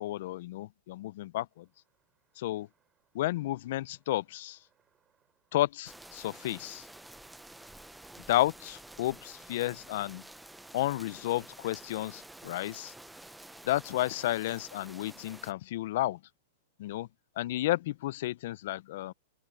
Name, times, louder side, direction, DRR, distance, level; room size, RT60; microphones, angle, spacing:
voice 1, 0.0-1.7 2.4-2.7 3.1-4.6 5.5-6.9 8.3-10.3 10.7-12.9 13.6-16.2 16.8-17.1 17.4-19.1, left 15 dB, 65° left, 0.5 m, -32 dB
sound 1, 1.5-15.5, right 8 dB, 25° right, 7.5 m, -77 dB
sound 2, 5.9-15.5, right 1 dB, 5° right, 0.6 m, -50 dB
open air
hypercardioid pair, 125°, 0 cm